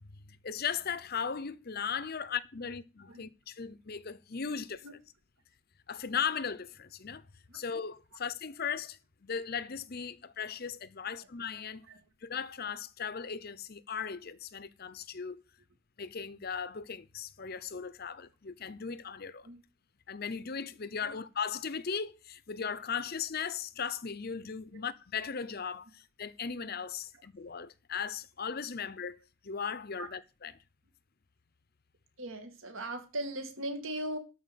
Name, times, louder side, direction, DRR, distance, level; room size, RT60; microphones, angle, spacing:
voice 1, 0.0-4.8 5.9-7.2 7.5-11.9 12.2-15.4 16.0-19.5 20.1-30.5, left 6 dB, 45° left, 0.7 m, -37 dB
voice 2, 32.2-34.2, right 1 dB, 70° right, 2.3 m, -38 dB
13.0 x 4.9 x 8.1 m
head